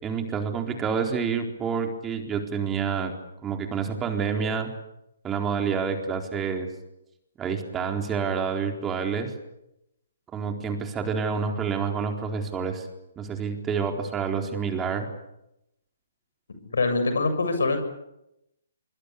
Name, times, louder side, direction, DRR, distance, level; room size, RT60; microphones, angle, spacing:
voice 1, 0.0-3.1 3.4-4.7 5.2-6.7 7.4-9.3 10.3-12.9 13.2-15.1, right 6 dB, 15° right, 4 dB, 4.1 m, -28 dB
voice 2, 16.6-17.8, left 3 dB, 75° left, 9 dB, 7.4 m, -24 dB
25.0 x 24.5 x 8.6 m, 0.86 s
figure-of-eight pair, 135°, 0 cm